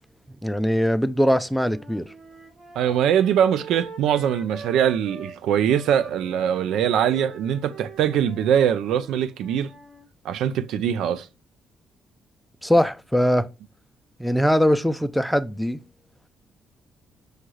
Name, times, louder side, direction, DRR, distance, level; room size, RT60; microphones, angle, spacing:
voice 1, 0.4-2.1 12.6-13.5 14.2-15.8, equal, ahead, 0.3 m, -21 dB
sound 1, 1.5-5.4 5.7-10.0, right 3 dB, 45° right, 1.2 m, -43 dB
voice 2, 2.8-9.7 10.2-11.3, right 9 dB, 85° right, 0.3 m, -22 dB
6.3 x 2.3 x 3.1 m
cardioid pair, 90°, 0 cm